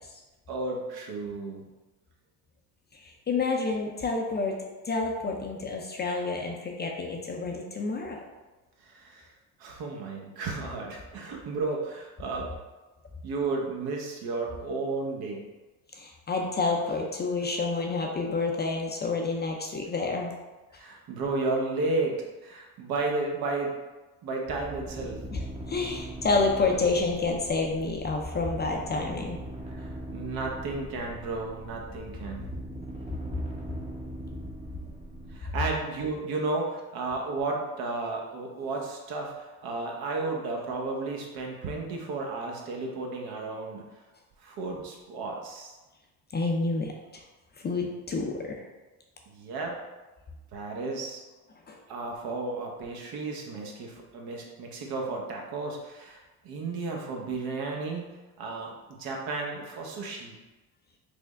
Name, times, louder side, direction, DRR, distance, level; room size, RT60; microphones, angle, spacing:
voice 1, 0.5-1.6 8.8-9.3 9.6-12.5 13.2-15.4 20.8-22.2 22.4-23.7 24.2-25.2 29.7-32.5 35.3-43.8 44.4-45.7 49.3-49.8 50.5-51.2 51.9-60.4, right 3 dB, 65° right, 0 dB, 0.8 m, -33 dB
voice 2, 3.0-4.6 4.9-8.2 16.0-20.3 25.3-29.4 46.3-47.2 47.6-48.6 51.7-51.8, left 3 dB, 25° left, 0 dB, 0.4 m, -29 dB
sound 1, 24.5-35.4, right 1 dB, 15° right, 0.7 m, -40 dB
3.3 x 2.1 x 3.5 m, 1.1 s
supercardioid pair, 80°, 40 cm